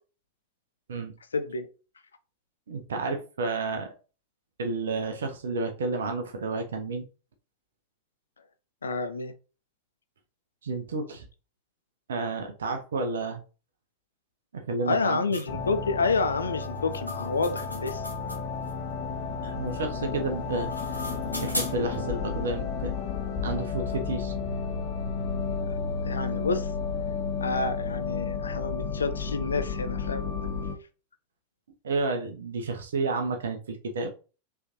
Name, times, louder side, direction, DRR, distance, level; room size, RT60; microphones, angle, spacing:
voice 1, 1.3-1.7 8.8-9.3 14.8-18.1 25.6-25.8 26.0-26.7 27.4-30.3, left 4 dB, 70° left, 0.4 m, -29 dB
voice 2, 2.7-3.9 4.6-7.0 10.6-11.3 12.1-13.4 14.5-15.2 19.4-20.7 21.3-23.0 23.4-24.3 31.8-34.1, right 3 dB, 65° right, 0.7 m, -31 dB
sound 1, 15.3-15.5 16.6-18.7 20.4-22.0, left 1 dB, 90° right, 1.2 m, -37 dB
sound 2, 15.5-30.7, left 5 dB, 45° left, 1.1 m, -32 dB
4.7 x 3.3 x 3.0 m
figure-of-eight pair, 90°, 0 cm